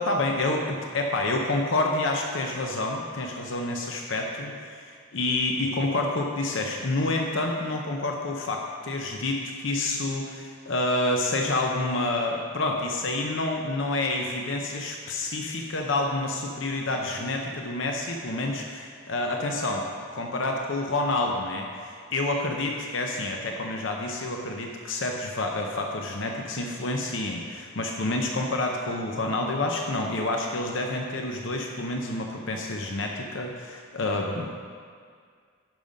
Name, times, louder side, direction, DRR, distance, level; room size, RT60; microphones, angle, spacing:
voice 1, 0.0-34.5, left 2 dB, 60° left, 1 dB, 0.7 m, -28 dB
10.5 x 5.5 x 5.1 m, 2.1 s
head